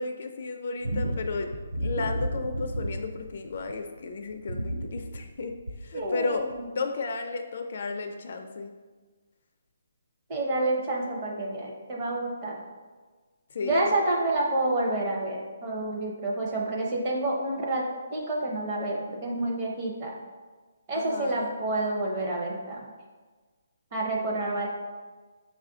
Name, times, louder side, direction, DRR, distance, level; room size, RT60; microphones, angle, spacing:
voice 1, 0.0-1.5 1.8-5.5 5.8-6.5 6.8-8.7 13.5-13.9 20.9-21.5, left 3 dB, 45° left, 5 dB, 0.3 m, -33 dB
sound 1, 0.8-3.9 4.3-6.0 6.5-6.6, right 1 dB, 65° right, 0.6 m, -32 dB
voice 2, 5.9-6.5 10.3-12.6 13.6-17.9 18.1-20.2 20.9-22.8 23.9-24.7, right 2 dB, 20° right, -2 dB, 0.7 m, -28 dB
6.0 x 2.4 x 3.7 m, 1.4 s
hypercardioid pair, 175°, 0 cm